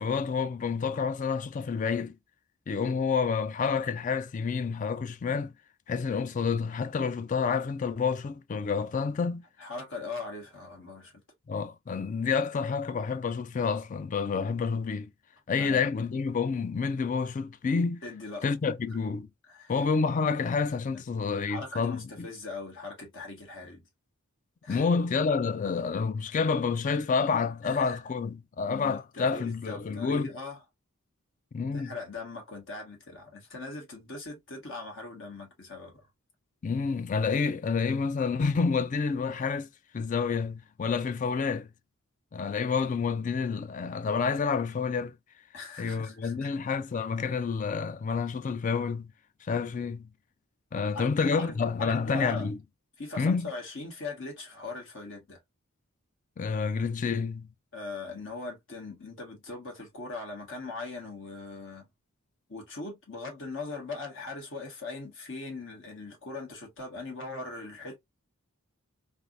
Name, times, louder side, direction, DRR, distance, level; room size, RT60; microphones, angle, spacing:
voice 1, 0.0-2.2 2.7-5.5 5.9-9.4 11.5-15.1 15.5-18.0 18.4-19.3 19.7-22.3 24.7-30.3 31.5-31.9 36.6-39.7 39.9-41.7 42.3-45.2 45.8-49.1 49.4-50.1 50.7-52.6 53.2-53.5 56.4-57.5, left 5 dB, 35° left, 0.3 m, -29 dB
voice 2, 9.6-11.1 15.6-15.8 18.0-18.4 19.5-19.7 20.9-21.0 21.5-23.9 24.6-24.8 27.6-28.0 28.7-30.6 31.7-36.1 45.5-46.5 50.9-52.5 53.0-55.4 57.7-61.9 62.5-68.0, left 3 dB, 60° left, 1.6 m, -40 dB
3.4 x 2.4 x 2.5 m
head